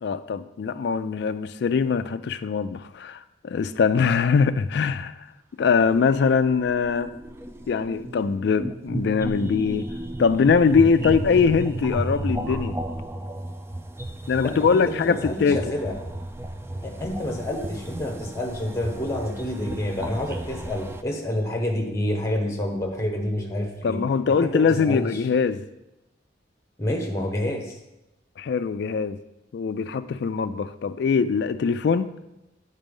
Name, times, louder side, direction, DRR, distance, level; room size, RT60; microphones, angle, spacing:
voice 1, 0.0-5.3 5.6-7.1 7.7-9.9 10.2-12.8 14.3-15.6 23.8-25.6 28.4-29.2 29.5-32.1, left 5 dB, 65° left, 11 dB, 0.3 m, -22 dB
sound 1, 5.6-21.0, right 1 dB, 15° right, 0.4 m, -34 dB
voice 2, 14.4-15.9 16.8-24.0 24.4-25.1 26.8-27.8, left 1 dB, 15° left, 2 dB, 1.1 m, -28 dB
8.9 x 4.1 x 5.3 m, 0.94 s
head